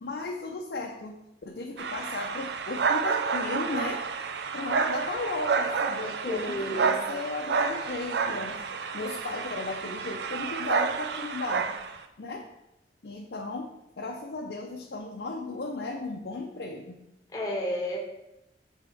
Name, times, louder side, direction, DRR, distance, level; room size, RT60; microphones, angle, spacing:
voice 1, 0.0-4.0 4.5-8.6 8.9-11.7 12.2-12.5 13.0-17.0, left 3 dB, 70° left, 1 dB, 0.6 m, -35 dB
sound 1, 1.8-12.0, right 5 dB, 70° right, 0.4 m, -30 dB
voice 2, 6.2-7.0 17.3-18.0, left 1 dB, 20° left, 0 dB, 1.0 m, -31 dB
8.2 x 3.6 x 3.5 m, 0.88 s
head